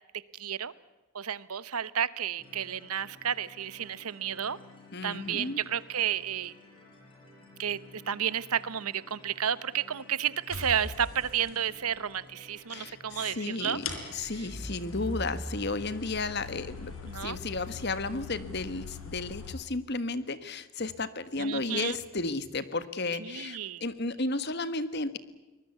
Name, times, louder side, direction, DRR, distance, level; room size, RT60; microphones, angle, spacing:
voice 1, 0.4-0.7 1.1-4.6 5.0-6.5 7.6-7.8 8.1-13.8 17.1-17.4 21.4-22.0 23.2-23.8, right 8 dB, 85° right, 17 dB, 1.0 m, -31 dB
sound 1, 2.4-18.3, left 2 dB, 20° left, 6.6 m, -54 dB
voice 2, 4.9-5.6 12.7-13.8 14.1-16.9 17.2-25.2, left 3 dB, 50° left, 13 dB, 1.4 m, -33 dB
sound 2, 10.5-11.6 12.9-13.0 13.8-19.6, left 3 dB, 75° left, 4.2 m, -40 dB
24.0 x 20.5 x 8.2 m, 1.1 s
head